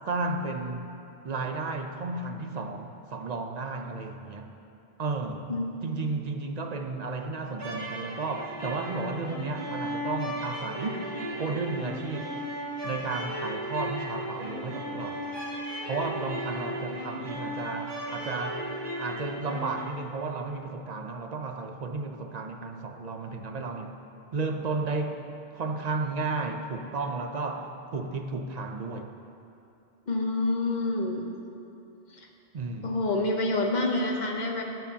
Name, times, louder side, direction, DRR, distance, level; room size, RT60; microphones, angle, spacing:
voice 1, 0.1-0.9 1.2-4.5 5.0-5.5 5.8-12.4 12.8-15.3 15.9-18.7 19.0-23.9 24.3-25.2 25.5-29.1 32.5-32.9, right 3 dB, 45° right, 5 dB, 0.7 m, -33 dB
voice 2, 5.5-5.8 30.1-31.3 32.8-34.6, left 2 dB, 45° left, 1 dB, 1.1 m, -27 dB
sound 1, 7.5-19.8, equal, 75° right, 2.7 m, -36 dB
16.5 x 9.9 x 2.8 m, 2.7 s
omnidirectional pair, 1.1 m